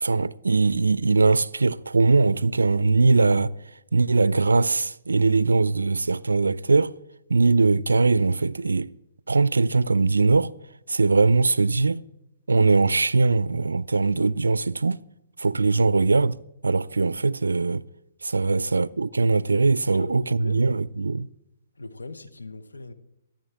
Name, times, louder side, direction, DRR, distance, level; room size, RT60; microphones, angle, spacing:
voice 1, 0.0-3.5 3.9-6.9 7.3-8.9 9.3-10.5 10.9-12.0 12.5-15.0 15.4-16.4 16.6-17.8 18.2-21.3, right 3 dB, 80° right, 0.4 m, -21 dB
voice 2, 19.9-20.8 21.8-22.9, left 3 dB, 80° left, 1.1 m, -40 dB
24.5 x 9.0 x 3.5 m
figure-of-eight pair, 120°, 0 cm